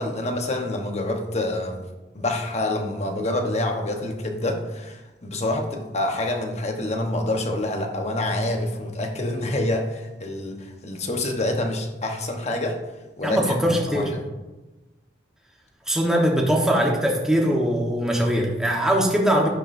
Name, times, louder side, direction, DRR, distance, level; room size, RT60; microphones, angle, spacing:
voice 1, 0.0-1.8 2.1-12.8 13.2-13.4 13.9-14.2, left 1 dB, 35° left, 3 dB, 1.1 m, -27 dB
voice 2, 13.2-14.1 15.9-19.5, equal, 5° right, -1 dB, 1.2 m, -21 dB
11.0 x 9.8 x 2.7 m, 1.1 s
head